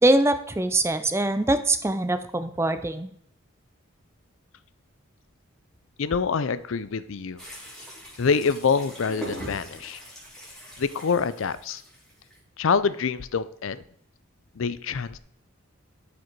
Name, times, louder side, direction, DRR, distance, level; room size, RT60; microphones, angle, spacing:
voice 1, 0.0-3.1, right 2 dB, 10° right, 10 dB, 0.5 m, -23 dB
voice 2, 6.0-7.4 8.2-10.0 10.8-11.8 12.6-13.8 14.6-15.2, left 5 dB, 70° left, 15 dB, 0.5 m, -26 dB
sound 1, 7.4-12.4, right 1 dB, 5° left, 2.8 m, -41 dB
12.0 x 5.1 x 4.6 m, 0.67 s
head